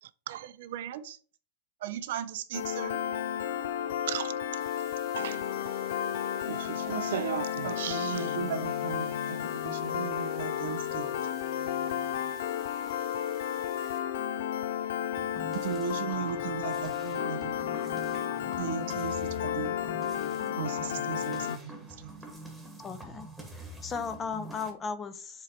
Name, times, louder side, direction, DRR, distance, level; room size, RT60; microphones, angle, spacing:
voice 1, 0.0-0.6 4.1-4.6 5.2-5.4 6.5-8.4, right 12 dB, 85° right, 0.3 m, -36 dB
voice 2, 0.7-1.2 1.8-3.0 7.6-9.4 9.6-11.2 15.6-17.6 18.6-19.8 20.6-22.3, right 9 dB, 65° right, 0.7 m, -37 dB
Piano, 2.5-21.6, left 10 dB, 70° left, 0.4 m, -32 dB
sound 1, 4.6-14.0, right 9 dB, 25° right, 0.9 m, -55 dB
sound 2, 15.2-24.7, right 1 dB, ahead, 1.3 m, -46 dB
voice 3, 22.8-23.3 23.8-25.4, left 5 dB, 15° left, 0.5 m, -36 dB
7.4 x 3.2 x 4.3 m
supercardioid pair, 170°, 0 cm